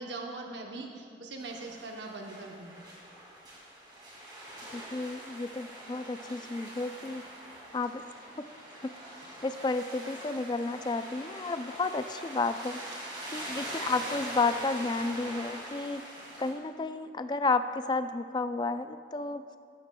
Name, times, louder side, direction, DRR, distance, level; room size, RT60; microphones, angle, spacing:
voice 1, 0.0-2.8, right 2 dB, 70° right, 1 dB, 0.9 m, -41 dB
sound 1, 1.4-16.5, right 1 dB, 25° right, 2.3 m, -43 dB
voice 2, 4.7-7.2 7.7-8.0 8.4-8.5 8.8-8.9 9.4-12.8 13.3-16.0 16.4-19.4, left 3 dB, 25° left, 10 dB, 0.3 m, -32 dB
14.5 x 12.0 x 2.2 m, 2.2 s
head